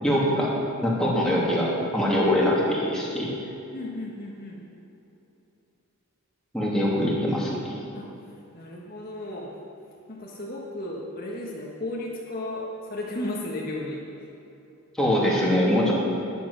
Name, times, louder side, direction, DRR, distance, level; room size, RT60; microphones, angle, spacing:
voice 1, 0.0-0.6 0.8-3.3 6.5-7.7 15.0-15.9, equal, 5° left, -6 dB, 2.7 m, -23 dB
voice 2, 3.7-4.6 7.9-8.0 8.5-9.5 10.1-14.3, left 1 dB, 40° left, -3 dB, 1.5 m, -34 dB
14.0 x 10.5 x 6.4 m, 2.9 s
head